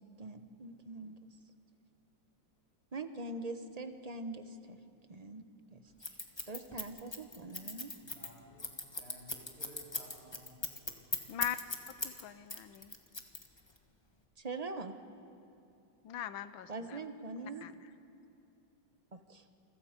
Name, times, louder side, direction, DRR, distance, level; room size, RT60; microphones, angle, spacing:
voice 1, 0.2-1.2 2.9-4.8 5.1-5.4 5.7-5.8 6.5-7.9 14.4-15.0 16.7-17.7 19.1-19.4, right 3 dB, 30° right, 8 dB, 0.8 m, -43 dB
Scissors, 6.0-12.2 12.5-13.8, left 2 dB, 15° left, 1.2 m, -38 dB
voice 2, 8.0-8.7 9.0-10.6, equal, 45° right, -6 dB, 5.3 m, -55 dB
voice 3, 12.0-12.9 16.0-17.0 17.4-17.7, left 10 dB, 85° left, 13 dB, 1.6 m, -41 dB
29.0 x 23.0 x 5.2 m, 2.7 s
omnidirectional pair, 2.1 m